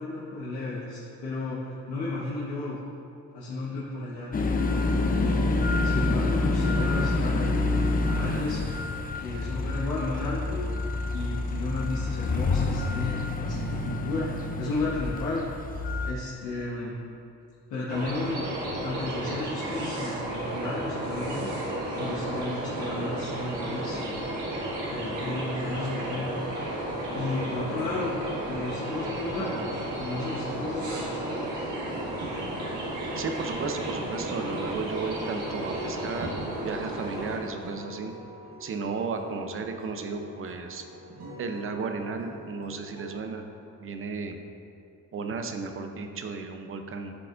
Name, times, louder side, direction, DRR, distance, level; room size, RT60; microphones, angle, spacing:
voice 1, 0.0-2.8 3.3-4.3 5.1-7.7 8.0-8.6 9.2-10.6 11.1-15.5 16.0-16.9 17.7-18.4 18.8-24.0 24.8-26.3 27.1-28.2 28.5-29.7 30.0-31.2, left 2 dB, 85° left, -8 dB, 1.2 m, -33 dB
sound 1, 4.3-16.1, left 2 dB, 30° left, 0.5 m, -27 dB
sound 2, 17.9-37.4, right 1 dB, 85° right, 1.6 m, -33 dB
sound 3, 24.3-43.2, left 1 dB, 65° right, 1.6 m, -46 dB
voice 2, 33.1-38.1 38.6-40.8 41.4-43.5 43.8-44.4 45.1-47.1, right 4 dB, 45° right, 6 dB, 0.7 m, -34 dB
11.0 x 4.6 x 2.6 m, 2.6 s
cardioid pair, 90°, 30 cm